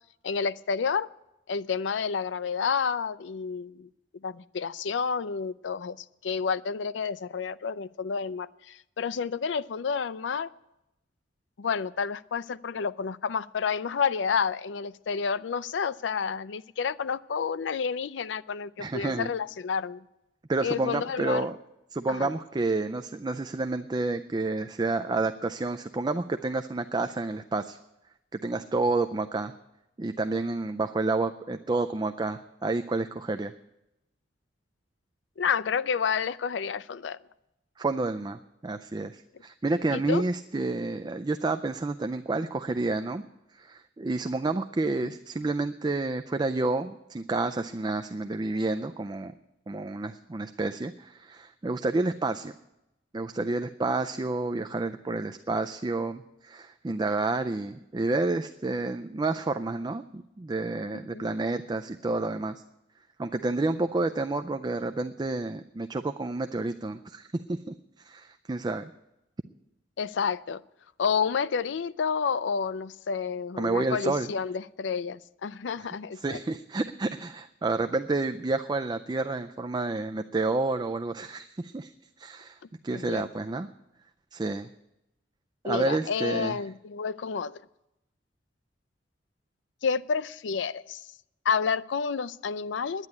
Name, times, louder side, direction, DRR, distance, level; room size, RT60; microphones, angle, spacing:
voice 1, 0.2-1.1 1.5-3.9 4.2-10.5 11.6-20.0 20.6-21.5 22.1-22.3 35.4-37.2 39.9-40.2 45.0-45.1 60.9-61.3 70.0-70.6 71.0-76.4 82.9-83.3 85.7-87.6 89.8-91.1 91.4-93.1, left 6 dB, 70° left, 0.4 m, -30 dB
voice 2, 18.8-19.3 20.5-21.6 21.9-27.8 28.3-29.5 30.0-33.5 37.8-43.2 43.6-49.3 49.7-52.5 53.1-62.6 63.2-67.7 68.0-68.9 73.6-74.3 76.2-81.9 82.2-82.6 82.8-83.7 84.3-84.7 85.6-86.6, right 3 dB, 25° right, 0.4 m, -29 dB
10.5 x 9.5 x 9.8 m
head